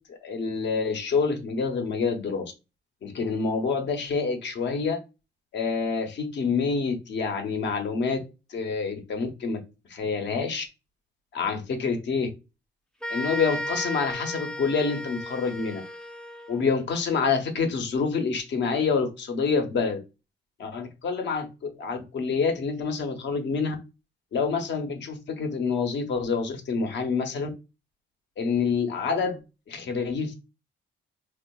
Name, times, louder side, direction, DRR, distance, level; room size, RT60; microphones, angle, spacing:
voice 1, 0.1-2.5 3.0-5.0 5.5-8.2 8.5-9.6 9.9-10.6 11.3-12.3 13.1-15.8 16.5-20.0 20.6-23.7 24.3-27.5 28.4-29.4 29.7-30.3, left 5 dB, 65° left, 5 dB, 0.8 m, -27 dB
sound 1, 13.0-16.7, equal, 5° left, 0.4 m, -34 dB
4.4 x 2.4 x 2.3 m, 0.28 s
cardioid pair, 125°, 20 cm